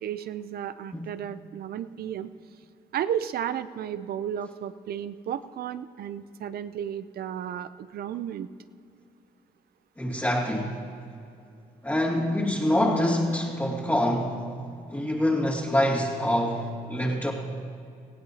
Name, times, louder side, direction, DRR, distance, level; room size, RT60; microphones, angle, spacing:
voice 1, 0.0-2.3 2.9-8.5, right 9 dB, 65° right, 13 dB, 0.5 m, -33 dB
voice 2, 10.0-10.8 11.8-14.5 14.9-17.3, left 1 dB, 10° left, -7 dB, 2.4 m, -25 dB
18.5 x 15.5 x 2.8 m, 2.4 s
supercardioid pair, 55°, 17 cm